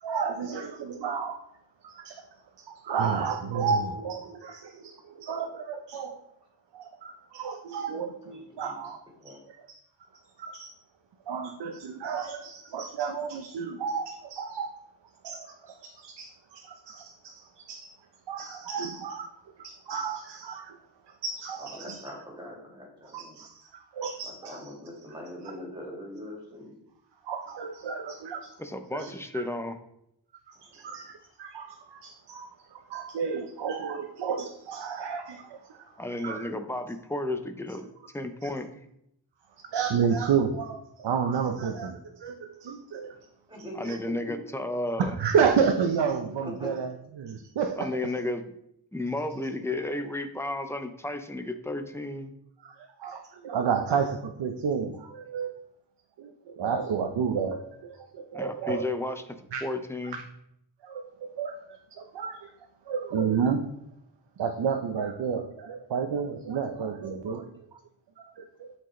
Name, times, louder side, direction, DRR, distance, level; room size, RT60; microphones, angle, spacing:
voice 1, 0.0-1.4 1.8-2.3 2.6-6.2 6.7-9.0 9.3-9.8 10.4-10.7 11.3-14.7 15.2-17.9 18.3-19.3 19.6-20.8 21.1-22.1 23.0-24.7 27.2-28.6 28.9-29.4 30.5-35.9 36.2-36.5 38.4-38.5 39.6-43.2 43.8-44.0 45.0-47.9 52.6-55.5 56.2-58.8 59.5-59.6 60.1-60.2 60.8-61.1 61.4-62.5 62.9-63.6 64.4-67.5 68.2-68.7, right 6 dB, 70° right, 5 dB, 0.7 m, -31 dB
voice 2, 8.3-8.8 9.2-9.4 21.6-23.4 24.2-26.8 30.7-31.0 43.5-43.9 46.4-46.7, left 1 dB, 10° right, -3 dB, 2.2 m, -43 dB
voice 3, 28.6-29.8 36.0-37.9 38.1-38.7 43.7-45.2 47.8-48.5 48.9-52.3 58.3-60.2, left 2 dB, 5° left, 7 dB, 0.5 m, -33 dB
12.0 x 4.5 x 3.1 m, 0.77 s
wide cardioid pair, 160°, 43 cm